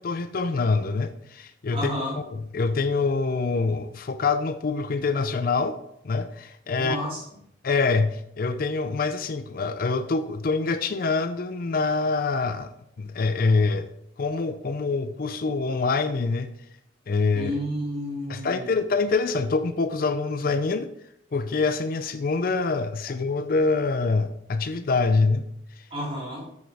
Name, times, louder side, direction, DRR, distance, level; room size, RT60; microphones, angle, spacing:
voice 1, 0.0-1.9 2.3-5.8 6.0-7.0 7.6-12.7 13.0-13.9 14.2-16.5 17.1-17.5 18.3-20.9 21.3-25.5 25.8-25.9, left 4 dB, 50° left, 10 dB, 0.5 m, -25 dB
voice 2, 1.7-2.2 6.8-7.2 17.3-18.8 25.9-26.4, equal, 30° right, -5 dB, 3.3 m, -31 dB
8.8 x 6.4 x 3.5 m, 0.75 s
head